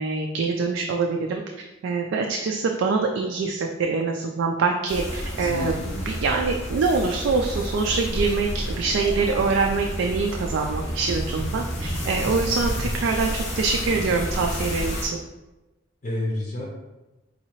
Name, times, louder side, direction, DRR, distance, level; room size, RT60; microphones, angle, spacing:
voice 1, 0.0-1.4 1.8-5.7 6.1-15.2, right 4 dB, 80° right, 2 dB, 0.3 m, -24 dB
sound 1, 4.9-15.1, equal, 80° left, 1.1 m, -30 dB
voice 2, 5.3-6.0 16.0-16.7, left 1 dB, 45° left, -3 dB, 0.6 m, -30 dB
3.9 x 2.7 x 2.9 m, 1.1 s
head